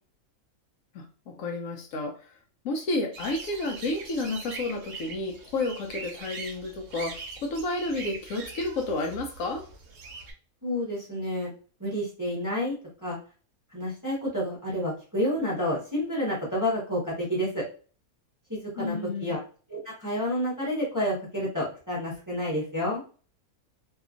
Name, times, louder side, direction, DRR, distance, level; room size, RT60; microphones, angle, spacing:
voice 1, 0.9-2.3 2.6-9.6 18.8-19.4, left 2 dB, 70° left, 2 dB, 0.9 m, -31 dB
sound 1, 3.1-10.3, right 4 dB, 65° right, 0.9 m, -42 dB
voice 2, 10.6-11.5 11.8-12.7 13.0-13.2 13.7-17.6 18.5-18.9 19.2-19.4 19.7-23.0, equal, 15° right, -6 dB, 0.8 m, -29 dB
2.8 x 2.4 x 2.4 m, 0.38 s
omnidirectional pair, 1.5 m